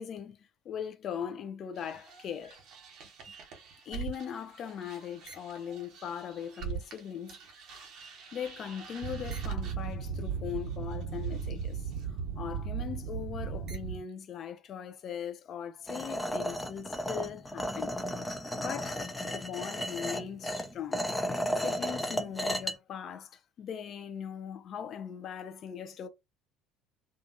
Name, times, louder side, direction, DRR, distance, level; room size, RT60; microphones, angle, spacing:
voice 1, 0.0-2.6 3.3-3.4 3.8-7.5 8.3-17.9 18.6-21.1 21.6-26.1, left 8 dB, 50° left, 0.5 m, -40 dB
sound 1, 1.8-7.0 7.3-14.0, right 6 dB, 55° right, 1.0 m, -38 dB
sound 2, 15.9-22.7, equal, 10° left, 0.6 m, -34 dB
2.6 x 2.4 x 2.6 m
hypercardioid pair, 60°, 0 cm